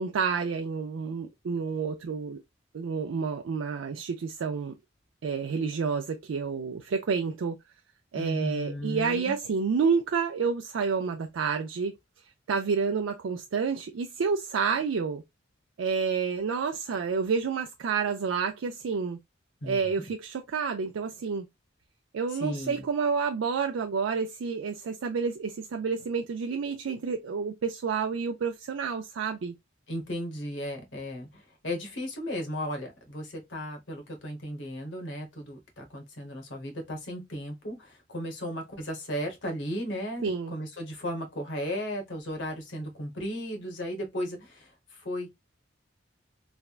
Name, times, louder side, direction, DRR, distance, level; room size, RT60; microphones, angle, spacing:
voice 1, 0.0-2.4 2.7-4.7 5.2-7.6 8.1-11.9 12.5-15.2 15.8-19.2 19.6-21.5 22.1-29.5 40.2-40.5, right 5 dB, 80° right, 0.4 m, -29 dB
voice 2, 8.1-9.4 19.6-19.8 22.3-22.8 29.9-45.3, equal, 70° left, 1.1 m, -35 dB
3.4 x 2.1 x 2.3 m
head